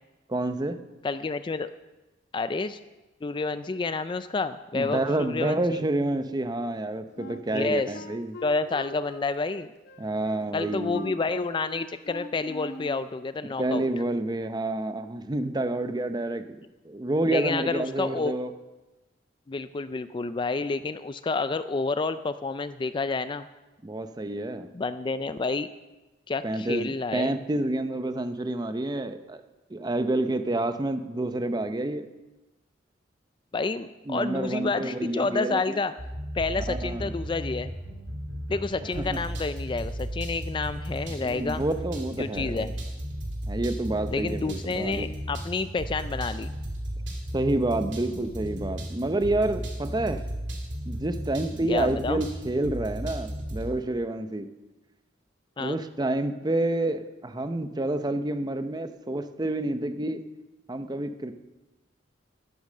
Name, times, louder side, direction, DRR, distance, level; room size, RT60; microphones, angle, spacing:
voice 1, 0.3-0.8 4.7-8.4 10.0-11.2 13.6-18.5 23.8-24.7 26.4-29.4 29.7-32.1 34.1-35.8 36.7-37.2 39.0-39.2 41.1-42.7 43.5-45.1 47.3-50.2 50.9-54.5 55.6-60.2 60.7-61.3, right 2 dB, 20° right, 9 dB, 0.6 m, -29 dB
voice 2, 1.0-1.7 2.3-2.8 3.2-5.8 7.5-7.9 8.4-9.7 10.5-13.8 17.3-18.4 19.5-23.5 24.7-25.7 26.3-27.3 33.5-35.9 36.3-37.7 38.5-41.6 42.2-42.7 44.1-46.5 51.7-52.2 55.6-55.8, left 3 dB, 25° left, 12 dB, 0.3 m, -29 dB
Wind instrument woodwind instrument, 7.1-13.0, left 2 dB, 55° left, 0.8 m, -42 dB
sound 1, 36.0-53.7, equal, 70° right, 2.7 m, -35 dB
11.5 x 10.5 x 6.6 m, 1.1 s
head